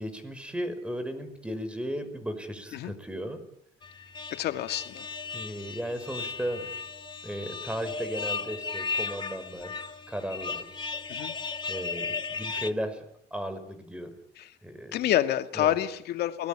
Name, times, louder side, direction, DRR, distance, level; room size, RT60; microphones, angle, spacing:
voice 1, 0.0-3.4 5.3-6.7 7.2-10.8 11.7-13.0 13.3-14.1 14.6-15.1 15.5-15.8, equal, 5° right, 10 dB, 5.7 m, -35 dB
sound 1, 3.8-12.7, left 4 dB, 30° left, 2.2 m, -36 dB
voice 2, 4.3-5.1 11.1-11.3 14.9-16.5, left 13 dB, 75° left, 8 dB, 2.2 m, -28 dB
29.5 x 20.5 x 9.0 m, 0.72 s
cardioid pair, 110°, 17 cm